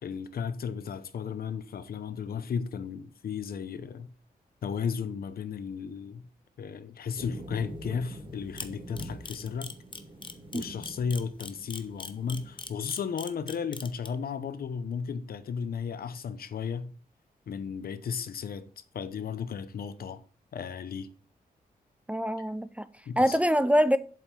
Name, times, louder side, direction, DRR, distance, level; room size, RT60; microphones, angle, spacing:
voice 1, 0.0-4.1 4.6-6.3 6.6-9.7 10.5-16.9 17.5-18.7 18.9-20.2 20.5-21.1 22.4-22.5 23.1-23.4, left 6 dB, 70° left, 0.9 m, -34 dB
sound 1, 7.2-12.7, equal, 30° right, 2.1 m, -45 dB
Camera, 8.6-14.1, left 4 dB, 30° left, 1.0 m, -39 dB
voice 2, 22.1-22.9 23.2-24.0, equal, 10° right, 0.4 m, -24 dB
7.9 x 5.3 x 5.9 m
wide cardioid pair, 110°, 16 cm